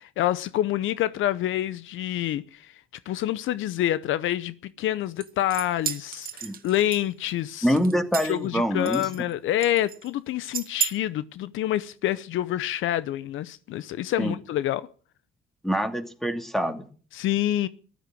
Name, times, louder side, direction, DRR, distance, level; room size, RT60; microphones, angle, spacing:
voice 1, 0.0-2.8 3.1-7.7 8.2-14.9 17.1-17.7, left 13 dB, 80° left, 0.7 m, -27 dB
sound 1, 5.2-7.3 7.7-8.5 8.9-9.3 9.6-10.1 10.5-10.9, right 8 dB, 50° right, 2.0 m, -33 dB
voice 2, 7.6-9.1 14.2-14.3 15.6-16.9, equal, ahead, 2.6 m, -25 dB
14.5 x 12.5 x 6.3 m
cardioid pair, 90°, 20 cm